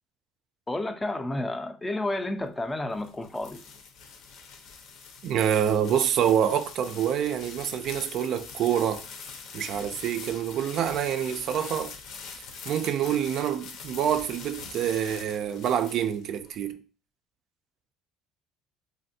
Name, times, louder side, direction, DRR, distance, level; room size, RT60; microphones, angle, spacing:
voice 1, 0.7-3.6, left 1 dB, 15° left, 0.4 m, -31 dB
sound 1, 2.7-16.5, left 5 dB, 65° left, 0.7 m, -43 dB
voice 2, 5.2-9.0 9.5-12.0 12.7-16.8, right 9 dB, 60° right, 0.3 m, -26 dB
3.2 x 2.5 x 2.6 m
supercardioid pair, 100°, 0 cm